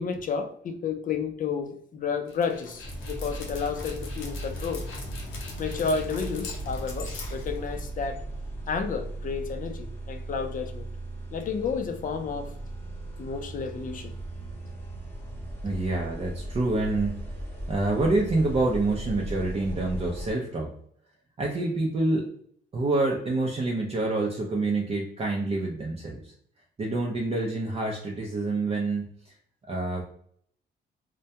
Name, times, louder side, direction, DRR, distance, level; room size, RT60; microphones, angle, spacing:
voice 1, 0.0-4.8 5.6-8.2 8.7-10.9 11.3-12.5 13.2-14.1, left 6 dB, 45° left, 6 dB, 0.5 m, -31 dB
Dog, 2.3-8.1, left 3 dB, 80° left, 0.7 m, -42 dB
sound 1, 2.8-20.3, right 1 dB, 10° left, 0.8 m, -37 dB
voice 2, 15.6-17.3 17.7-20.8 21.4-22.3 22.7-26.3 26.8-29.3 29.7-30.0, right 2 dB, 30° right, -2 dB, 0.5 m, -27 dB
2.2 x 2.2 x 2.7 m, 0.64 s
cardioid pair, 90°, 20 cm